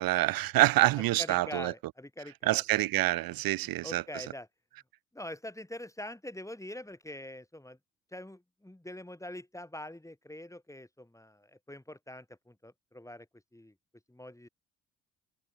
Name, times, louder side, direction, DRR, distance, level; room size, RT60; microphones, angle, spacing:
voice 1, 0.0-1.7 2.4-4.2, right 17 dB, 65° right, 1.0 m, -27 dB
voice 2, 1.2-2.6 3.8-4.5 5.1-7.8 8.1-13.3 13.5-13.7 14.1-14.5, left 1 dB, 10° left, 7.4 m, -44 dB
hypercardioid pair, 60°, 38 cm